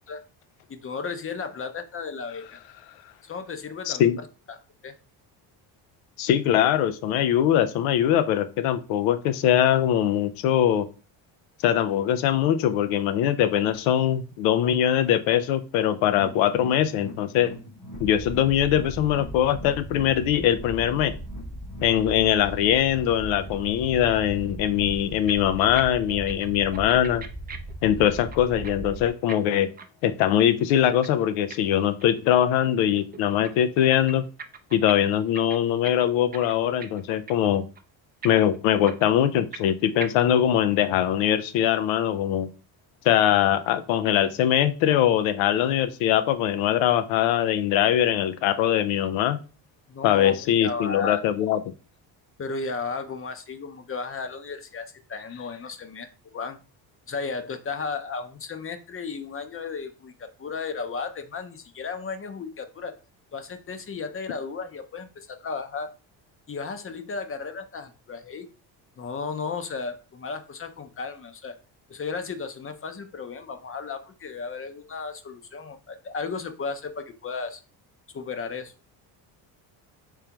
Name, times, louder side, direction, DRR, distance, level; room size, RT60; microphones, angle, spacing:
voice 1, 0.7-2.6 3.2-4.1 4.5-4.6 4.8-4.9 49.9-51.2 52.4-56.1 56.3-56.6 57.1-62.9 63.3-65.9 66.5-68.5 69.0-71.5 71.9-77.6 78.1-78.7, left 4 dB, 30° left, 9 dB, 0.6 m, -34 dB
voice 2, 3.9-4.2 6.2-10.9 11.6-17.5 18.0-21.1 21.8-27.2 27.8-29.7 30.0-34.2 34.7-37.6 38.2-42.5 43.0-49.4 50.0-51.6, left 10 dB, 85° left, 11 dB, 0.6 m, -22 dB
sound 1, 16.0-25.3 25.6-25.7 26.1-26.2, equal, 45° left, 1.0 m, -44 dB
sound 2, 17.9-29.1, right 1 dB, 5° left, 0.9 m, -38 dB
sound 3, 25.0-25.1 25.3-25.8 26.1-28.7 29.0-32.4 32.6-33.5 33.8-34.9 35.2-37.0 37.3-37.5 37.8-37.9 38.2-39.7 40.0-40.1, right 5 dB, 20° right, 0.4 m, -41 dB
3.7 x 3.3 x 2.9 m, 0.33 s
supercardioid pair, 80°, 46 cm